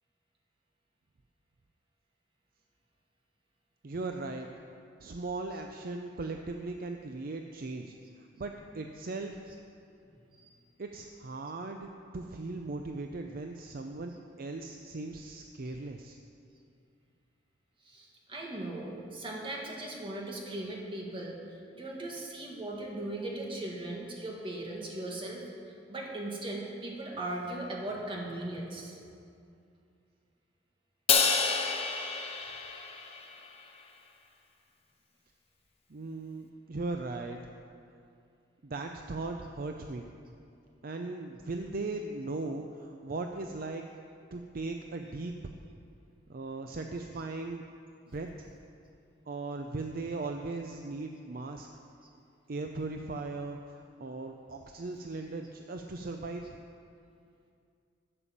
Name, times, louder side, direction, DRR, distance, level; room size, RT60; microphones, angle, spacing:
voice 1, 3.8-4.5 5.0-9.6 10.8-16.2 35.9-37.4 38.6-40.1 40.8-43.9 44.3-45.4 46.3-47.6 48.1-48.5 49.3-51.7 52.5-56.6, right 3 dB, 50° right, 4 dB, 0.5 m, -38 dB
voice 2, 17.8-25.4 25.9-29.0, right 1 dB, 30° right, -2 dB, 1.7 m, -38 dB
Crash cymbal, 31.1-33.5, left 5 dB, 35° left, 0.9 m, -28 dB
11.0 x 6.9 x 7.3 m, 2.5 s
head